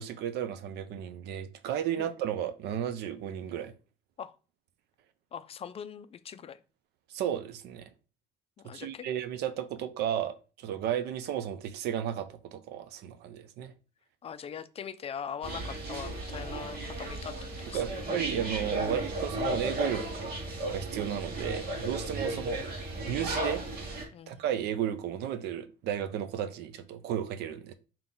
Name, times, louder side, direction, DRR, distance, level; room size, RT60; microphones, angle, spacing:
voice 1, 0.0-3.7 7.1-7.9 8.7-13.7 17.7-20.3 20.7-22.6 23.1-23.6 24.3-27.7, right 10 dB, 75° right, 0.6 m, -34 dB
voice 2, 5.3-6.6 8.6-9.1 14.2-18.0 22.2-22.6 24.1-24.4, left 7 dB, 35° left, 0.4 m, -41 dB
sound 1, 15.4-24.0, right 1 dB, 60° right, 1.5 m, -34 dB
3.7 x 2.9 x 3.8 m
cardioid pair, 110°, 17 cm